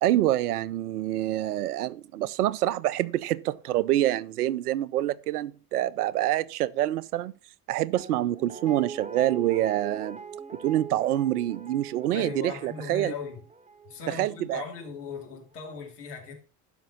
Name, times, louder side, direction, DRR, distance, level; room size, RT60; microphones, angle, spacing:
voice 1, 0.0-7.3 7.7-10.2 10.6-13.1 14.1-14.6, right 13 dB, 70° right, 0.6 m, -26 dB
Guitar, 8.0-15.0 15.3-15.4, right 5 dB, 15° right, 0.9 m, -42 dB
voice 2, 12.1-13.4 13.8-16.3, left 5 dB, 75° left, 2.7 m, -38 dB
12.5 x 5.2 x 5.3 m
figure-of-eight pair, 60°, 48 cm